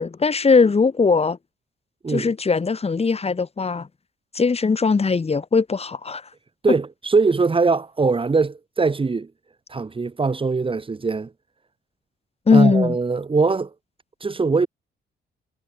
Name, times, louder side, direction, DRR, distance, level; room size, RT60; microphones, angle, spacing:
voice 1, 0.0-1.4 2.1-3.9 4.3-6.2 12.5-13.0, left 4 dB, 30° left, 3.6 m, -19 dB
voice 2, 6.6-9.3 9.7-11.3 12.5-13.7 14.2-14.7, right 4 dB, 25° right, 2.0 m, -21 dB
cardioid pair, 90°, 20 cm